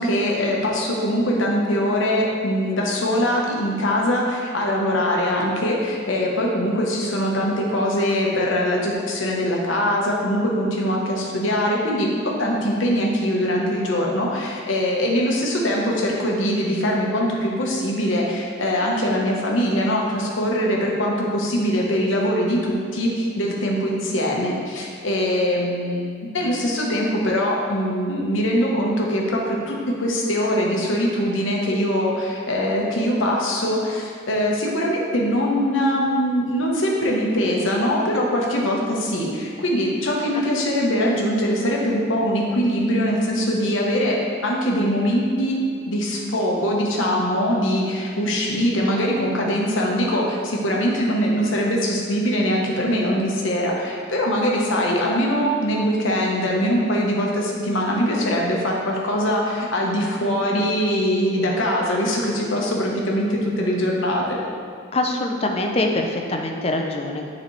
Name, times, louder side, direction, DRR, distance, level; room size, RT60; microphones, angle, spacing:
voice 1, 0.0-26.1 26.3-44.2 44.4-64.4, equal, 85° left, -2 dB, 1.1 m, -22 dB
voice 2, 64.9-67.3, left 2 dB, 30° left, 2 dB, 0.5 m, -24 dB
9.5 x 4.2 x 3.3 m, 2.3 s
head